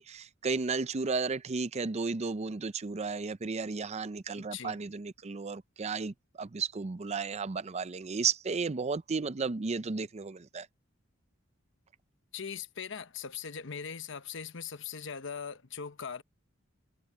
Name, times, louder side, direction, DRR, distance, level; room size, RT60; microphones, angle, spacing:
voice 1, 0.0-10.7, right 4 dB, 35° right, 0.5 m, -33 dB
voice 2, 4.4-4.8 12.3-16.2, left 6 dB, 65° left, 1.0 m, -40 dB
head